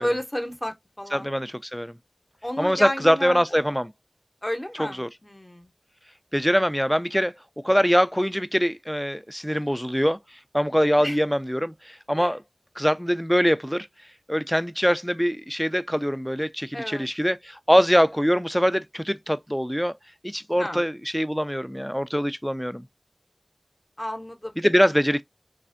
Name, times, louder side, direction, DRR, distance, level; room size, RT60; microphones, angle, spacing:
voice 1, 0.0-1.3 2.4-3.4 4.4-5.7 11.0-11.2 12.2-12.3 16.7-17.1 20.6-20.8 24.0-24.6, equal, 30° left, 0.8 m, -31 dB
voice 2, 1.1-2.0 2.6-3.9 4.8-5.1 6.3-7.3 7.6-10.2 10.5-12.4 12.8-13.9 14.3-20.0 20.2-22.8 24.6-25.2, equal, 5° left, 0.3 m, -23 dB
3.3 x 2.5 x 2.5 m
wide cardioid pair, 40°, 0 cm